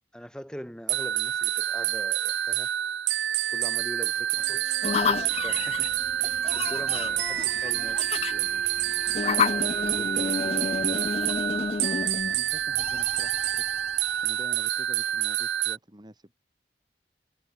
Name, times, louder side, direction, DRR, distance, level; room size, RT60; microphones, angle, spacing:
voice 1, 0.1-2.7 3.5-5.9 6.2-8.6 9.3-10.8, equal, 5° left, 4.6 m, -43 dB
sound 1, 0.9-15.8, right 12 dB, 85° right, 0.5 m, -28 dB
sound 2, 4.3-11.5, right 2 dB, 50° right, 2.6 m, -48 dB
sound 3, 4.8-14.4, left 5 dB, 35° left, 0.3 m, -31 dB
voice 2, 12.3-14.0 14.2-16.3, equal, 25° right, 3.5 m, -47 dB
head